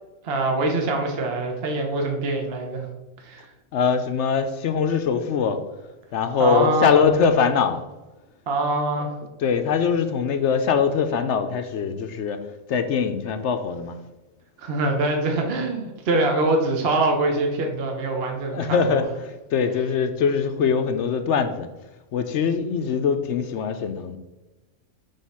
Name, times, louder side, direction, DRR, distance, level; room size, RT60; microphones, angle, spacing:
voice 1, 0.2-2.9 3.2-3.4 6.4-7.1 8.5-9.1 14.6-19.0, right 2 dB, 50° right, 2 dB, 1.0 m, -24 dB
voice 2, 3.7-5.6 6.1-7.8 9.4-12.4 12.7-13.9 18.5-21.7 22.1-24.2, left 6 dB, 65° left, 8 dB, 0.8 m, -22 dB
6.5 x 3.5 x 5.5 m, 1.1 s
omnidirectional pair, 1.4 m